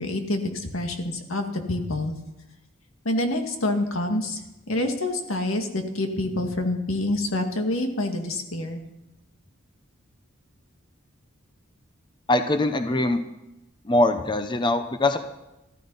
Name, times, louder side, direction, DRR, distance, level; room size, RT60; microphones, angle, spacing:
voice 1, 0.0-2.1 3.1-8.8, left 1 dB, 90° left, 4 dB, 2.1 m, -27 dB
voice 2, 12.3-13.2 13.9-15.2, left 2 dB, 25° left, 8 dB, 0.8 m, -22 dB
14.5 x 14.0 x 5.5 m, 0.94 s
head